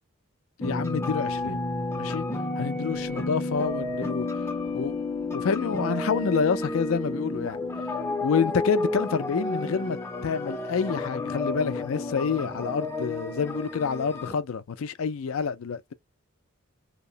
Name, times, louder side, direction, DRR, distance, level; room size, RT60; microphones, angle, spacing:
voice 1, 0.6-1.6 2.0-2.2 2.6-4.3 4.7-5.0 5.3-7.6 8.2-10.0 10.2-15.9, left 6 dB, 75° left, 0.4 m, -28 dB
sound 1, 0.6-14.3, left 2 dB, 10° left, 0.4 m, -31 dB
2.8 x 2.0 x 2.7 m
head